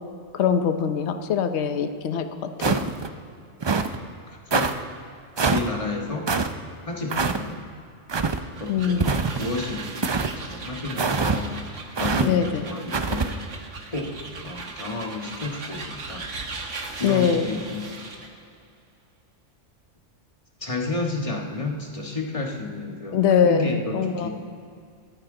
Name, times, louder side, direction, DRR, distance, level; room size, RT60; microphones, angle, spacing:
voice 1, 0.3-2.3 2.6-2.9 8.7-9.1 12.2-12.6 17.0-17.5 23.1-24.3, left 7 dB, 70° left, 8 dB, 1.0 m, -22 dB
sound 1, 2.6-3.1 3.6-4.0 4.5-4.7 5.4-5.7 6.3-6.5 7.1-7.4 8.1-8.4 9.0-9.5 10.0-10.3 11.0-11.4 12.0-12.3 12.9-13.3, right 4 dB, 45° right, 0.3 m, -23 dB
voice 2, 4.3-4.7 5.4-6.3 6.8-7.6 8.6-13.4 13.9-14.1 14.4-16.2 17.0-18.0 20.6-24.3, left 3 dB, 30° left, 0 dB, 1.6 m, -31 dB
sound 2, 8.3-18.4, right 3 dB, 75° right, 1.6 m, -38 dB
24.0 x 9.6 x 3.8 m, 2.4 s
omnidirectional pair, 1.2 m